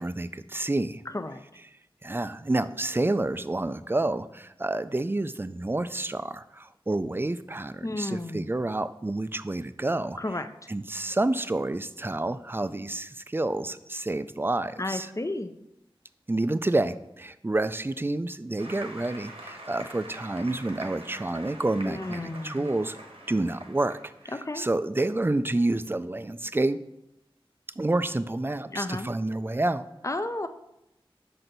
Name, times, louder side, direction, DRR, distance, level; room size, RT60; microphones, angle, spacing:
voice 1, 0.0-1.0 2.0-10.2 10.7-15.1 16.3-23.0 23.3-26.8 27.8-29.9, right 2 dB, 25° right, 13 dB, 0.3 m, -29 dB
voice 2, 7.8-8.5 10.2-10.5 14.8-15.5 21.8-22.7 24.3-24.6 28.7-29.1 30.0-30.5, left 2 dB, 35° left, 9 dB, 0.5 m, -32 dB
Applause, 18.6-24.2, right 1 dB, 85° right, 1.2 m, -44 dB
6.1 x 5.4 x 3.9 m, 0.83 s
wide cardioid pair, 50°, 10 cm